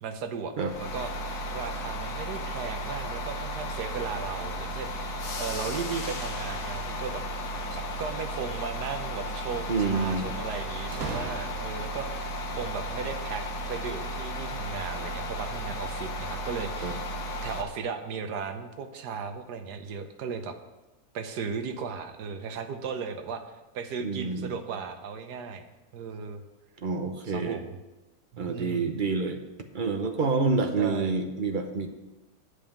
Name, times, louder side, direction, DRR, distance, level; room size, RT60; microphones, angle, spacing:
voice 1, 0.0-7.2 7.7-13.4 13.7-17.0 17.4-20.6 21.1-23.4 23.7-25.6 25.9-26.4 27.2-27.8 28.3-28.9 30.8-31.2, right 6 dB, 90° right, 8 dB, 1.4 m, -36 dB
sound 1, 0.6-17.6, equal, 75° left, 1.6 m, -34 dB
sound 2, 7.5-8.5 10.9-12.0, right 4 dB, 65° right, 1.4 m, -39 dB
voice 2, 9.7-10.3 16.8-16.9 24.0-24.5 26.8-27.6 28.4-29.4 29.7-31.9, right 4 dB, 45° right, 5 dB, 0.7 m, -28 dB
8.3 x 5.4 x 7.0 m, 1.1 s
omnidirectional pair, 1.7 m